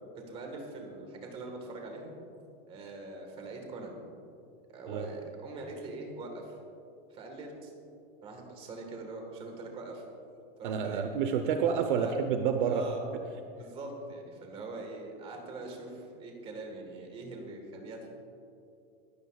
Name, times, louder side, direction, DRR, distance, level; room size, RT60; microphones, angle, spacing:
voice 1, 0.3-2.1 2.7-4.0 4.7-6.6 7.1-7.7 8.2-10.0 10.6-11.2 12.0-12.1 12.6-13.1 13.6-18.1, right 2 dB, 20° right, 2 dB, 1.5 m, -43 dB
voice 2, 10.6-12.8, right 7 dB, 55° right, 6 dB, 0.9 m, -29 dB
22.5 x 12.0 x 2.4 m, 2.6 s
supercardioid pair, 175°, 30 cm